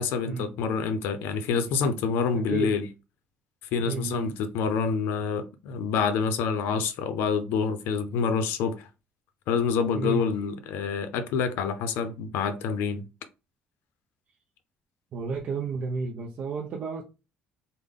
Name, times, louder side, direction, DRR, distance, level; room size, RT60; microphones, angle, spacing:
voice 1, 0.0-2.9 3.7-8.9 9.5-13.1, left 5 dB, 80° left, 0.5 m, -27 dB
voice 2, 2.3-2.7 3.8-4.4 9.9-10.3 15.1-17.0, right 5 dB, 40° right, 0.5 m, -32 dB
3.5 x 2.1 x 3.6 m
cardioid pair, 170°, 4 cm